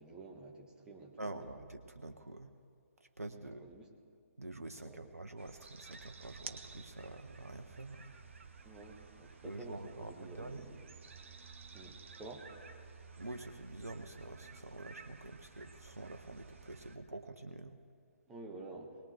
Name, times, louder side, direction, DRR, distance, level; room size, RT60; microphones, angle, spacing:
voice 1, 0.0-1.5 3.4-3.9 4.8-5.1 8.6-10.8 11.7-12.5 18.3-19.0, right 2 dB, 10° right, 0 dB, 1.5 m, -51 dB
voice 2, 1.2-2.5 3.0-3.7 4.4-8.1 9.4-10.8 13.2-17.8, right 2 dB, 85° right, 7 dB, 0.8 m, -47 dB
sound 1, 5.4-17.0, right 4 dB, 60° right, 1.1 m, -53 dB
21.0 x 19.0 x 3.4 m, 2.3 s
figure-of-eight pair, 135°, 8 cm